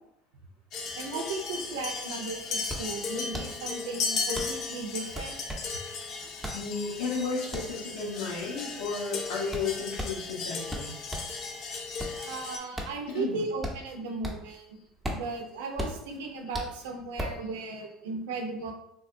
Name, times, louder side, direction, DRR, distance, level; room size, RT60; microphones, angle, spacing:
sound 1, 0.7-12.6, left 4 dB, 55° left, 0.5 m, -36 dB
voice 1, 1.0-5.4 12.2-14.8 15.1-18.7, right 3 dB, 90° right, 3 dB, 0.5 m, -36 dB
sound 2, 2.1-11.4 11.8-14.6 14.9-17.5, equal, 10° right, 0.7 m, -38 dB
voice 2, 6.5-11.0 13.1-13.4, left 4 dB, 80° left, -3 dB, 0.9 m, -33 dB
3.3 x 2.2 x 2.5 m, 0.76 s
supercardioid pair, 90°, 0 cm